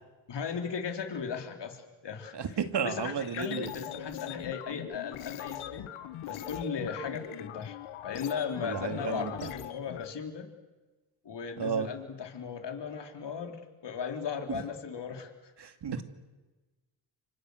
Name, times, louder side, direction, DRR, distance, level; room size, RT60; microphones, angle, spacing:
voice 1, 0.3-2.6 2.8-5.9 6.3-7.8 8.0-10.5 11.2-15.3, left 6 dB, 60° left, 4 dB, 4.1 m, -37 dB
voice 2, 2.3-3.7 8.6-9.3 11.6-11.9 14.5-14.6 15.6-16.0, right 7 dB, 55° right, 7 dB, 2.7 m, -32 dB
sound 1, 3.2-10.0, left 12 dB, 90° left, 1.5 m, -41 dB
29.5 x 25.5 x 6.6 m, 1.2 s
cardioid pair, 75°, 47 cm